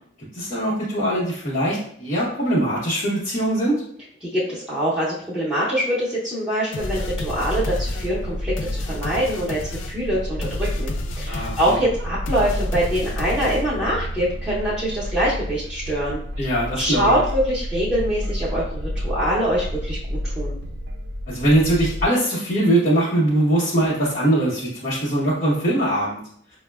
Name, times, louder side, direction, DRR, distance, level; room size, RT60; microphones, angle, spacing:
voice 1, 0.3-3.8 11.3-11.8 16.4-17.2 21.3-26.2, right 1 dB, 45° left, -11 dB, 0.9 m, -21 dB
voice 2, 4.2-20.6, equal, ahead, -10 dB, 0.7 m, -24 dB
Ld Rave Theme, 6.7-13.9, left 3 dB, 75° left, 0.4 m, -35 dB
sound 1, 6.8-22.1, equal, 55° right, 0.4 m, -30 dB
5.6 x 2.1 x 2.2 m, 0.63 s
head